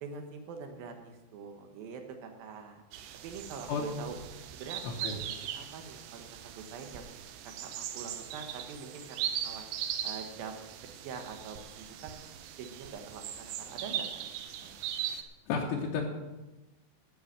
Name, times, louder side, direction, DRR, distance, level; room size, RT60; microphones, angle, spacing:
voice 1, 0.0-2.8 3.2-4.2 4.5-7.1 7.4-9.7 10.0-12.1 12.6-14.2 14.6-14.8, right 5 dB, 70° right, 5 dB, 2.3 m, -45 dB
sound 1, 2.9-15.2, right 10 dB, 90° right, 2.3 m, -39 dB
voice 2, 4.8-5.2 15.5-16.0, left 5 dB, 80° left, -1 dB, 3.4 m, -32 dB
14.0 x 5.6 x 8.7 m, 1.1 s
omnidirectional pair, 5.6 m